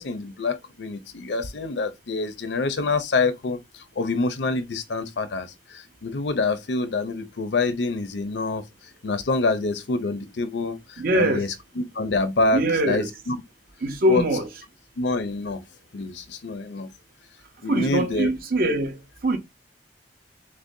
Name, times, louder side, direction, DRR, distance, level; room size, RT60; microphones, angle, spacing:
voice 1, 0.0-8.6 9.0-13.4 14.1-14.3 15.0-15.6 15.9-16.9 17.6-18.3, left 3 dB, 70° left, 0.6 m, -26 dB
voice 2, 11.0-11.4 12.5-13.1 13.8-14.5 17.7-19.0 19.2-19.4, right 1 dB, 55° right, 0.7 m, -22 dB
6.1 x 2.1 x 2.6 m
head